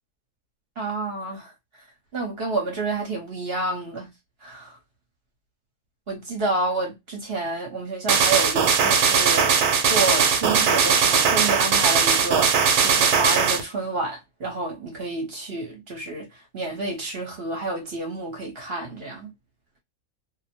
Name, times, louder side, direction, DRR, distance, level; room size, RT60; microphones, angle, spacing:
voice 1, 0.8-1.5 2.1-4.1 4.4-4.7 6.1-9.6 9.9-16.3 16.5-19.3, right 2 dB, 45° right, 1.0 m, -29 dB
sound 1, 8.1-13.6, right 6 dB, 90° right, 1.1 m, -19 dB
2.6 x 2.1 x 2.8 m
omnidirectional pair, 1.6 m